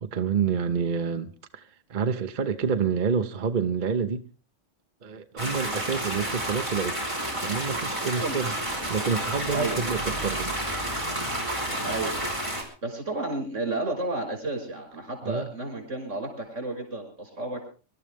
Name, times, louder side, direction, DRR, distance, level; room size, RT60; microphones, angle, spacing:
voice 1, 0.0-4.3 5.0-7.0 7.4-8.5 8.9-10.6 15.2-15.5, right 6 dB, 45° right, 1.0 m, -28 dB
sound 1, 5.4-12.6, right 1 dB, 25° right, 4.1 m, -30 dB
voice 2, 8.0-8.4 9.5-9.8 11.8-12.2 12.8-17.7, right 2 dB, 90° right, 6.0 m, -32 dB
24.0 x 12.5 x 3.5 m
omnidirectional pair, 1.2 m